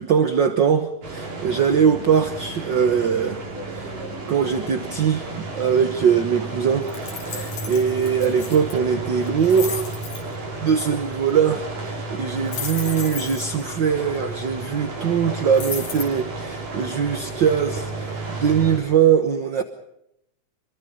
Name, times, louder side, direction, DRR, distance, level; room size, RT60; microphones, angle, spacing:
voice 1, 0.0-4.0 4.3-6.9 7.2-9.9 10.6-19.6, right 7 dB, 55° right, 8 dB, 1.3 m, -21 dB
sound 1, 1.0-18.8, right 2 dB, 80° right, 6.8 m, -32 dB
sound 2, 6.9-8.7 9.3-10.2 12.5-13.6 15.5-16.0, left 6 dB, 70° left, 5.1 m, -33 dB
26.5 x 23.5 x 5.4 m, 0.80 s
omnidirectional pair, 3.7 m